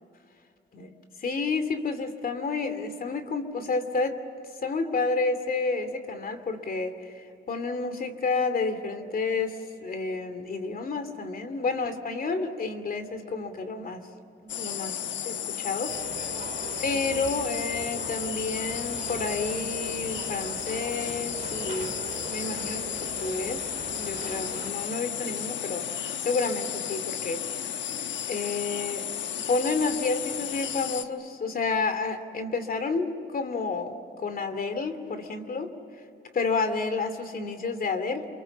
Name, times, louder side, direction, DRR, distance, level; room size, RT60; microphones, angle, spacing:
voice 1, 0.7-4.2 4.6-14.1 14.4-16.2 16.8-22.0 22.3-23.7 24.0-25.9 26.2-27.4 28.3-29.0 29.5-35.7 36.3-38.3, left 4 dB, 45° left, 9 dB, 2.6 m, -30 dB
sound 1, 14.5-31.0, left 10 dB, 70° left, 1.1 m, -33 dB
sound 2, 15.9-24.7, right 4 dB, 40° right, 3.2 m, -40 dB
28.5 x 24.0 x 7.3 m, 2.6 s
cardioid pair, 90°, 20 cm